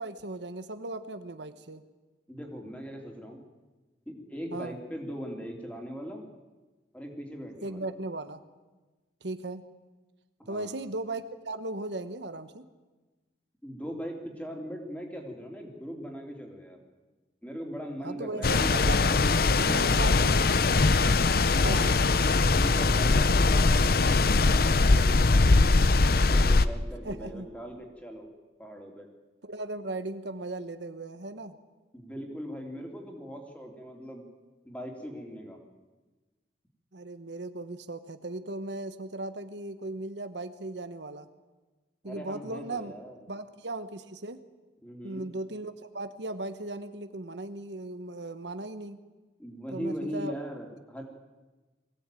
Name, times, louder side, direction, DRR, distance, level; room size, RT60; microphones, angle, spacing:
voice 1, 0.0-1.8 4.5-4.7 7.6-8.4 9.2-9.7 10.5-12.6 18.0-19.1 19.5-20.5 21.6-22.0 27.0-27.5 29.4-31.6 36.9-41.3 42.0-42.9 43.3-44.4 45.0-49.0 49.7-50.3, right 2 dB, 75° right, 10 dB, 1.1 m, -37 dB
voice 2, 2.3-3.4 4.0-6.2 6.9-7.9 10.4-10.7 13.6-16.8 17.4-20.6 22.5-25.8 26.1-28.3 28.6-29.1 31.9-34.2 34.6-35.6 42.0-43.2 44.8-45.3 49.4-51.0, equal, 10° left, 2 dB, 3.2 m, -40 dB
sound 1, 18.4-26.6, left 3 dB, 55° left, 0.7 m, -22 dB
22.0 x 16.5 x 9.1 m, 1.2 s
head